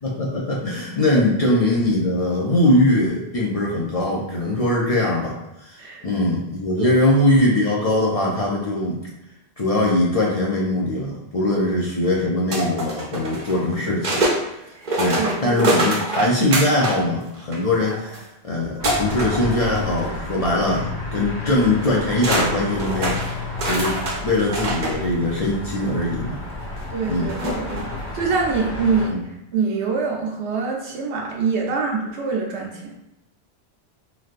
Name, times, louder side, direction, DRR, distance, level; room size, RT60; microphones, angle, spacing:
voice 1, 0.0-9.0 9.6-14.1 15.0-23.2 23.6-26.4 27.1-27.3 29.1-29.2, left 1 dB, 45° left, -4 dB, 0.5 m, -21 dB
sound 1, 12.5-14.4 14.8-17.0 17.3-18.2 18.8-20.2 20.6-20.8 21.8-21.9 22.2-25.0 25.8-25.9 27.3-28.0, right 1 dB, 50° right, 0.7 m, -25 dB
voice 2, 15.2-15.6 26.9-29.2 29.5-33.0, right 4 dB, 85° right, 0 dB, 1.0 m, -25 dB
sound 2, 18.8-29.1, left 2 dB, 90° left, 1.4 m, -32 dB
3.2 x 2.7 x 2.4 m, 0.92 s
omnidirectional pair, 1.1 m